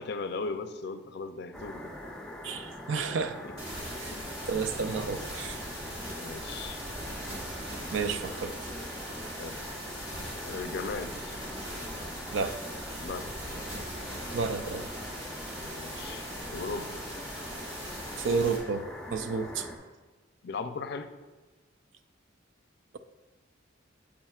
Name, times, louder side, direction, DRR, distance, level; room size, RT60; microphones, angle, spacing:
voice 1, 0.0-1.9 3.4-3.5 4.1-4.3 6.2-6.8 9.4-9.6 10.4-11.4 13.0-13.3 15.6-17.0 20.4-21.1, left 4 dB, 60° left, 9 dB, 0.5 m, -37 dB
sound 1, 1.5-19.8, left 1 dB, 5° left, 0.7 m, -42 dB
voice 2, 2.4-3.4 4.0-4.2 4.5-5.6 7.5-8.5 12.3-12.5 14.3-14.9 18.2-18.9 19.1-19.7, right 4 dB, 70° right, 10 dB, 0.5 m, -31 dB
sound 2, 3.6-18.6, equal, 30° right, 2.1 m, -41 dB
8.7 x 7.5 x 2.4 m, 1.3 s
head